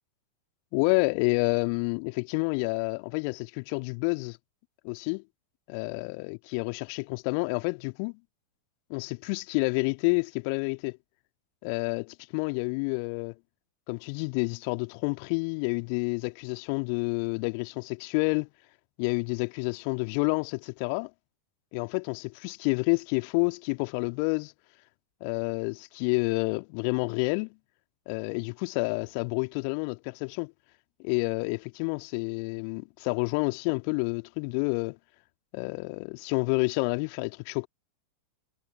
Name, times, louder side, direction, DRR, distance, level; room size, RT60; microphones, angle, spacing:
voice 1, 0.7-4.4 4.8-5.2 5.7-8.2 8.9-11.0 11.6-13.3 13.9-18.5 19.0-21.1 21.7-24.5 25.2-27.6 28.1-30.5 31.0-35.0 35.5-37.7, left 37 dB, 45° left, 2.0 m, -29 dB
figure-of-eight pair, 90°, 0 cm